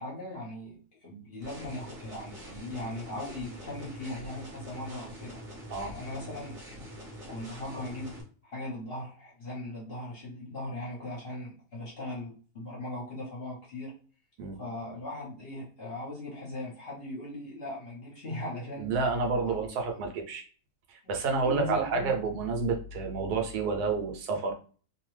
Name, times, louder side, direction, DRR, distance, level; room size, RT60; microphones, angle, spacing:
voice 1, 0.0-5.4 5.8-6.6 7.3-13.9 14.6-18.9 19.5-19.6 21.0-22.1, left 1 dB, 45° left, -4 dB, 0.9 m, -39 dB
sound 1, 1.4-8.2, equal, 30° right, 0.8 m, -45 dB
voice 2, 18.8-20.4 20.9-24.5, right 4 dB, 75° right, 4 dB, 1.1 m, -29 dB
2.7 x 2.3 x 3.1 m, 0.39 s
omnidirectional pair, 1.7 m